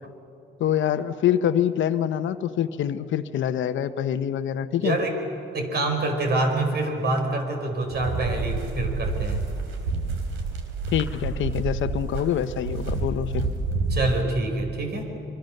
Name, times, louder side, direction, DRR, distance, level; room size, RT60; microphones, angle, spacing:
voice 1, 0.6-5.0 10.9-13.5, left 10 dB, 75° left, 12 dB, 1.0 m, -25 dB
voice 2, 4.8-5.2 5.5-9.4 13.9-15.1, right 2 dB, 55° right, 4 dB, 5.4 m, -26 dB
sound 1, 7.9-14.2, right 3 dB, 90° right, 3.5 m, -29 dB
25.0 x 24.0 x 6.7 m, 3.0 s
cardioid pair, 90°, 20 cm